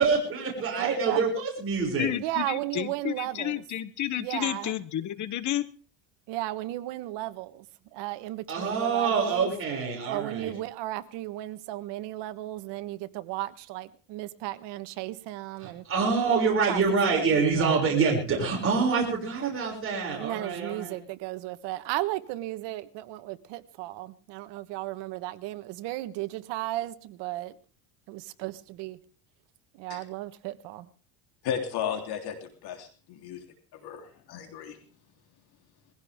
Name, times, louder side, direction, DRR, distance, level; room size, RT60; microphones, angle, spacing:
voice 1, 0.0-2.1 8.5-10.5 15.6-21.0, right 5 dB, 30° right, 6.3 m, -26 dB
voice 2, 0.8-1.3 2.2-3.5 4.2-4.8 6.3-7.6 7.9-9.5 10.1-15.8 16.2-16.8 17.1-17.9 20.1-27.5 28.1-29.0 29.8-30.9, right 16 dB, 65° right, 1.4 m, -35 dB
voice 3, 2.0-5.7, left 12 dB, 40° left, 1.0 m, -31 dB
voice 4, 31.4-33.4 33.8-34.8, left 8 dB, 55° left, 3.6 m, -34 dB
21.0 x 16.0 x 3.6 m
supercardioid pair, 120°, 45 cm